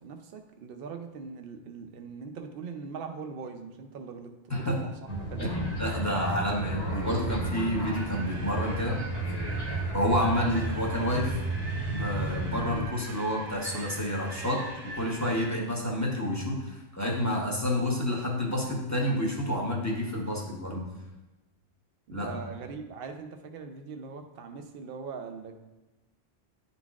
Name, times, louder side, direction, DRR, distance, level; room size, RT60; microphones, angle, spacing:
voice 1, 0.0-5.0 5.3-5.5 22.1-25.5, right 5 dB, 60° right, 5 dB, 0.8 m, -41 dB
sound 1, 5.1-12.9, right 2 dB, 70° left, 1.5 m, -33 dB
voice 2, 5.4-9.0 9.9-11.4 11.9-20.8 22.1-22.3, equal, 15° left, -3 dB, 1.0 m, -29 dB
Wind, 5.6-15.5, right 1 dB, 85° right, 1.1 m, -43 dB
sound 2, 10.4-13.4, left 1 dB, 50° left, 0.8 m, -44 dB
10.5 x 4.0 x 2.4 m, 1.1 s
omnidirectional pair, 1.2 m